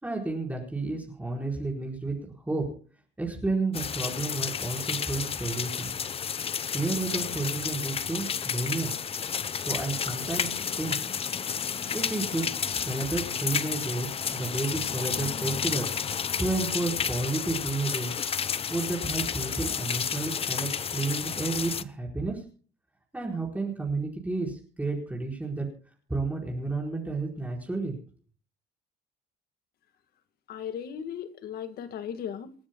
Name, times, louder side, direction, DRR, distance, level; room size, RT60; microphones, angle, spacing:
voice 1, 0.0-2.7 3.2-6.0 6.7-8.9 9.6-11.0 11.9-15.9 16.4-18.1 18.7-22.4 23.1-25.7 26.1-27.9, right 3 dB, 10° right, -2 dB, 4.7 m, -31 dB
sound 1, 3.7-21.8, left 7 dB, 35° left, 0.8 m, -31 dB
voice 2, 30.5-32.5, left 8 dB, 65° left, 10 dB, 1.8 m, -36 dB
28.5 x 9.9 x 2.3 m, 0.42 s
cardioid pair, 110°, 17 cm